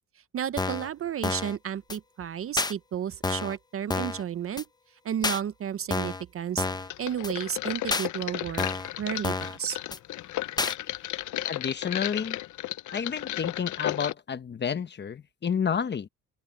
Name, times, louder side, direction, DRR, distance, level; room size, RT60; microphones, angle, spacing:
voice 1, 0.3-4.6 5.0-6.7 7.0-8.6 9.0-9.8, right 9 dB, 40° right, 0.6 m, -32 dB
sound 1, 0.6-0.9 1.2-1.6 1.9-2.0 2.6-2.7 3.2-3.6 3.9-4.2 4.6-4.7 5.2-5.4 5.9-6.2 6.6-6.9 7.2-7.3 7.9-8.1 8.6-8.9 9.2-9.6 9.9-10.0 10.6-10.7, left 3 dB, 10° left, 0.6 m, -29 dB
sound 2, 6.9-14.1, left 14 dB, 60° left, 0.7 m, -34 dB
voice 2, 11.5-12.4 12.9-16.1, left 7 dB, 30° left, 0.9 m, -30 dB
open air
cardioid pair, 135°, 34 cm